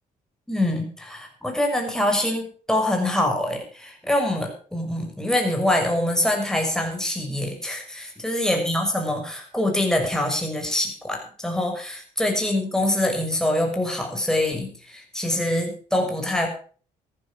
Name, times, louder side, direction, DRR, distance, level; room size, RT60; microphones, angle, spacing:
voice 1, 0.5-16.5, left 1 dB, 5° left, 2 dB, 6.5 m, -24 dB
14.0 x 13.0 x 5.2 m, 0.42 s
supercardioid pair, 65°, 16 cm